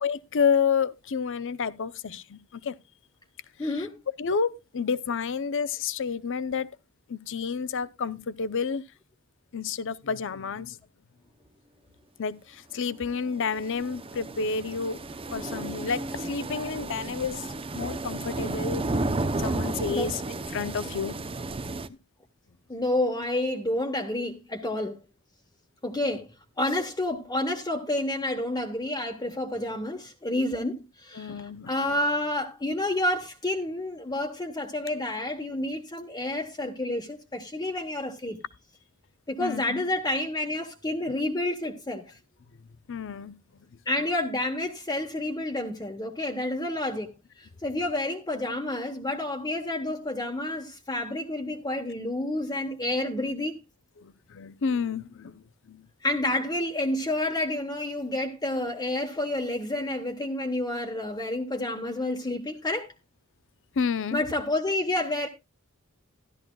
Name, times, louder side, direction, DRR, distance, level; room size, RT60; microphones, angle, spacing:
voice 1, 0.0-2.8 3.7-3.9 4.2-6.7 7.1-8.8 9.5-10.8 12.2-15.0 15.3-17.5 17.7-18.8 19.2-20.2 20.5-21.2 31.1-31.7 39.4-39.8 42.9-43.4 54.0-55.9 63.8-64.2, left 6 dB, 60° left, 0.6 m, -30 dB
voice 2, 3.6-4.0 19.9-20.1 22.7-25.0 25.8-26.3 26.6-38.4 39.3-42.2 43.9-53.6 56.0-62.9 64.1-65.3, left 1 dB, 20° left, 1.1 m, -29 dB
sound 1, 12.9-21.9, right 2 dB, 25° right, 0.6 m, -33 dB
14.0 x 12.0 x 2.3 m
head